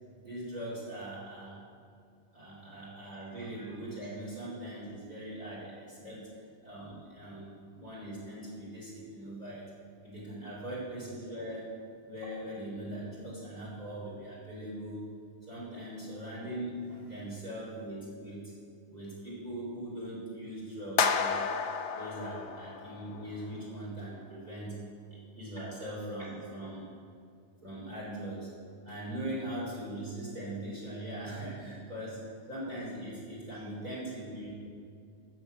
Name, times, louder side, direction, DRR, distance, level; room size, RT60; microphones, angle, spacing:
voice 1, 0.2-1.6 2.3-6.3 6.6-9.7 10.0-11.7 12.1-15.1 15.5-18.5 18.9-21.4 21.9-24.8 25.1-26.9 27.6-28.5 28.8-32.2 32.5-34.5, right 1 dB, 35° right, -7 dB, 3.6 m, -40 dB
sound 1, 21.0-23.2, left 6 dB, 70° left, 1.0 m, -31 dB
13.5 x 6.9 x 8.0 m, 2.4 s
omnidirectional pair, 1.2 m